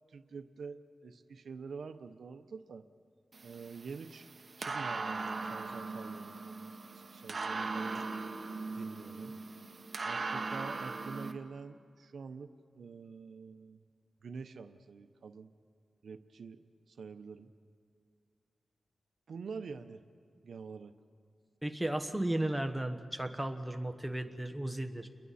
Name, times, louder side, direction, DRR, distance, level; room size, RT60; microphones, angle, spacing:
voice 1, 0.1-2.9 3.4-4.3 4.6-8.0 8.7-9.4 10.0-13.8 14.2-15.5 16.0-17.5 19.3-20.0 20.4-20.9, right 5 dB, 80° right, 9 dB, 0.7 m, -46 dB
sound 1, 3.3-11.3, right 3 dB, 45° right, 1.1 m, -39 dB
voice 2, 21.6-25.1, right 1 dB, 5° right, 6 dB, 1.2 m, -35 dB
29.5 x 22.0 x 4.2 m, 2.3 s
wide cardioid pair, 95°, 0 cm